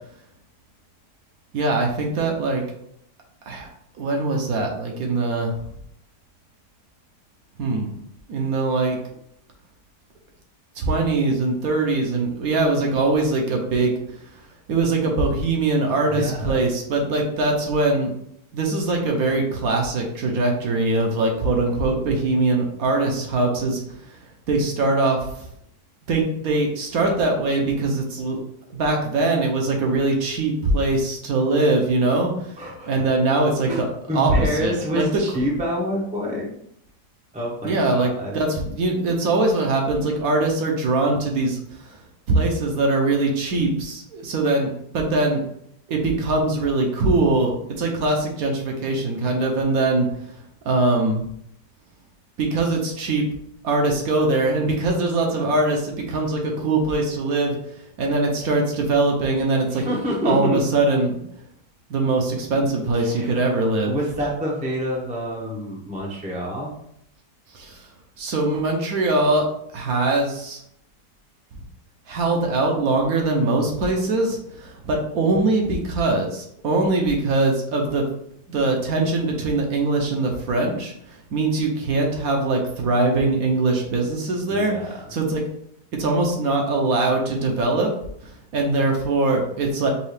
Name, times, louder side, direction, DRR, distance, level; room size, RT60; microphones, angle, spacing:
voice 1, 1.5-2.6 3.5-3.7 4.0-5.6 7.6-7.9 8.3-9.0 10.7-13.9 14.2-14.3 14.7-18.1 18.5-25.5 26.1-28.4 28.7-32.6 32.9-33.9 34.1-35.0 37.6-42.0 42.3-45.4 45.9-50.1 50.6-51.2 52.4-53.2 53.6-57.6 58.0-59.8 60.2-61.1 61.9-64.0 67.5-67.9 68.2-70.6 72.1-78.0 78.5-85.4 85.9-87.9 88.2-89.9, right 2 dB, 65° right, 1 dB, 1.1 m, -22 dB
voice 2, 16.1-16.6 32.6-32.9 33.7-33.8 34.1-36.5 37.3-38.4 59.7-60.6 62.9-63.4 63.9-66.7 84.5-84.9, equal, 10° right, -2 dB, 0.4 m, -27 dB
5.4 x 2.4 x 3.3 m, 0.72 s
omnidirectional pair, 1.8 m